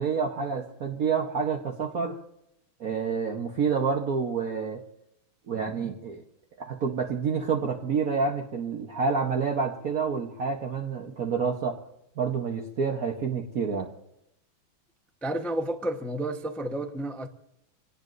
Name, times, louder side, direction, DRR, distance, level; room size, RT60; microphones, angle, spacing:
voice 1, 0.0-2.2 2.8-4.8 5.5-6.2 6.6-11.8 12.2-13.9, right 5 dB, 50° right, 1.4 m, -28 dB
voice 2, 15.2-17.3, right 1 dB, ahead, 0.4 m, -31 dB
27.0 x 18.5 x 2.6 m
omnidirectional pair, 2.2 m